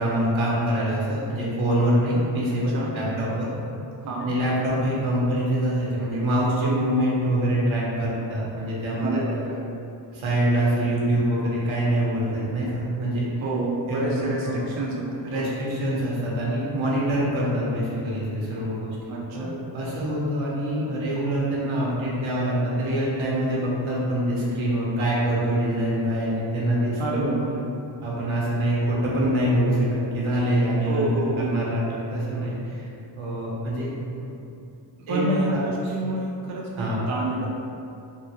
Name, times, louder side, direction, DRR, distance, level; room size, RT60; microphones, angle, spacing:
voice 1, 0.0-3.5 4.2-9.2 10.1-13.3 13.9-14.6 15.2-19.0 19.3-27.3 28.0-31.1 31.3-32.9 33.2-33.9 35.1-35.6 36.8-37.0, right 1 dB, 80° right, -6 dB, 0.9 m, -25 dB
voice 2, 9.0-9.6 13.4-15.5 19.1-19.6 27.0-27.7 30.9-31.6 35.0-37.5, right 2 dB, 40° right, -4 dB, 0.4 m, -28 dB
3.6 x 2.0 x 2.8 m, 2.6 s
wide cardioid pair, 145°, 47 cm